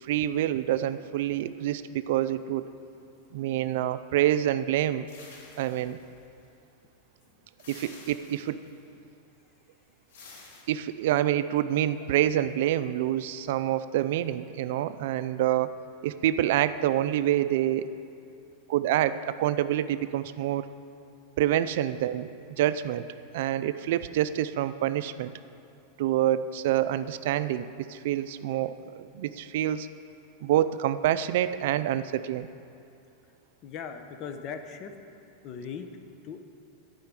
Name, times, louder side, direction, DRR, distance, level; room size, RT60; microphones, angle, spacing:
voice 1, 0.0-2.7 3.3-5.1 5.6-6.0 7.7-8.6 10.7-15.8 16.0-17.8 18.7-20.7 21.4-23.0 23.3-25.3 26.0-29.9 30.4-32.5, right 12 dB, 70° right, 13 dB, 0.4 m, -27 dB
sound 1, 5.1-6.5 7.6-8.8 10.1-10.6, left 3 dB, 80° left, 2.4 m, -50 dB
voice 2, 33.6-34.9 35.4-35.9 36.2-36.4, left 6 dB, 40° left, 7 dB, 0.9 m, -38 dB
11.5 x 5.6 x 9.0 m, 2.5 s
supercardioid pair, 140°, 0 cm